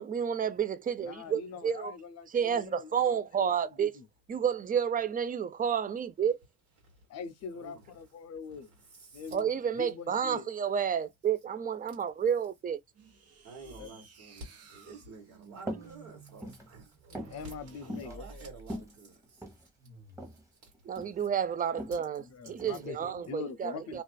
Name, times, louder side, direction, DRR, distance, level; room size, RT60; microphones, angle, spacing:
voice 1, 0.0-1.9 2.3-4.0 4.3-6.4 9.3-12.8 20.9-24.0, right 8 dB, 30° right, 0.4 m, -30 dB
voice 2, 1.0-4.1 7.1-8.7 9.1-10.5 13.8-14.0 17.3-18.4 22.2-24.0, left 5 dB, 60° left, 0.5 m, -43 dB
voice 3, 8.5-9.3 13.4-17.2 17.8-19.4 20.6-20.7, right 3 dB, 85° right, 1.4 m, -50 dB
sound 1, 12.9-18.9 19.8-20.4, right 3 dB, 55° right, 0.9 m, -53 dB
sound 2, 15.6-15.9 16.3-16.7 17.1-17.4 17.9-18.2 18.6-19.6 20.2-20.4 20.7-21.2 21.8-22.0 22.6-22.9, equal, 10° right, 1.0 m, -40 dB
2.4 x 2.4 x 2.2 m
cardioid pair, 90°, 30 cm